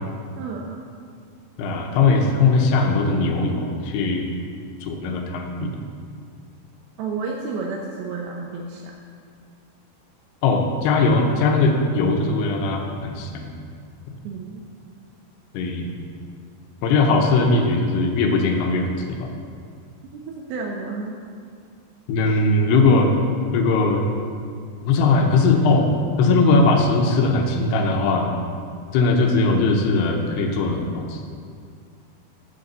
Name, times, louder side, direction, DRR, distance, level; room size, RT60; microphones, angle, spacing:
voice 1, 0.4-0.8 7.0-8.9 14.2-14.6 20.1-21.2, right 4 dB, 80° right, 0 dB, 2.5 m, -31 dB
voice 2, 1.6-4.3 4.8-5.8 10.4-13.5 15.5-15.9 16.8-19.3 22.1-23.1 23.5-24.0 24.8-25.9 26.2-28.3 28.9-31.2, left 3 dB, 85° left, 3 dB, 2.9 m, -19 dB
7.5 x 6.6 x 6.8 m, 2.2 s
omnidirectional pair, 4.6 m